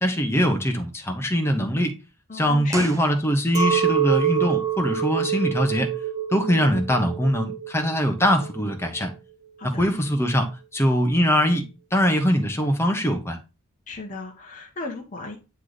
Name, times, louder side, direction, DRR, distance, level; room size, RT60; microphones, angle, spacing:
voice 1, 0.0-1.9 2.3-5.9 6.3-9.1 9.6-11.6 11.9-13.4, equal, 10° left, 0.9 m, -22 dB
voice 2, 2.3-3.0 9.6-9.9 13.9-15.4, left 3 dB, 35° left, 1.0 m, -36 dB
sound 1, 2.7-3.8 4.0-4.1, right 2 dB, 15° right, 0.6 m, -36 dB
Chink clink, 3.5-9.0, right 8 dB, 35° right, 1.3 m, -26 dB
9.2 x 3.3 x 4.0 m
head